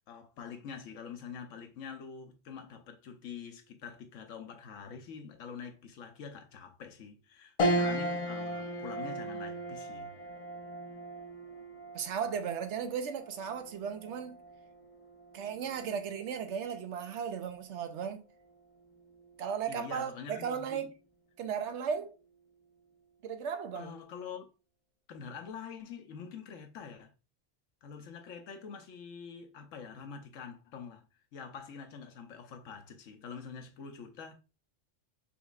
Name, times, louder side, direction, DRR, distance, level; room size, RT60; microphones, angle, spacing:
voice 1, 0.1-10.1 19.7-20.9 23.7-24.5 25.1-27.1 27.8-31.1 31.3-34.3, left 6 dB, 85° left, 1.1 m, -45 dB
sound 1, 7.6-17.2 17.7-17.8 19.1-19.6, equal, 40° left, 0.5 m, -37 dB
voice 2, 11.9-14.4 15.3-18.2 19.4-20.9 21.4-22.1 23.2-23.9, right 7 dB, 70° right, 0.9 m, -36 dB
5.6 x 3.0 x 2.4 m
omnidirectional pair, 1.3 m